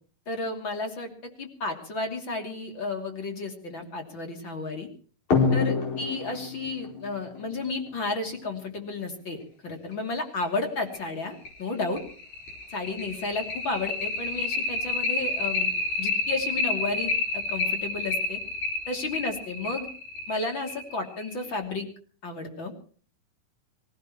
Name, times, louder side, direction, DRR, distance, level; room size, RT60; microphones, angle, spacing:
voice 1, 0.3-4.9 5.5-12.0 12.7-15.7 16.0-18.4 18.9-19.9 20.3-21.9 22.2-22.7, left 3 dB, 35° left, 4 dB, 3.4 m, -32 dB
sound 1, 5.3-8.5 9.9-10.0 10.4-10.5 10.9-11.0 11.5-21.5, left 4 dB, 60° left, 5.9 m, -29 dB
25.5 x 17.0 x 3.1 m, 0.42 s
omnidirectional pair, 3.8 m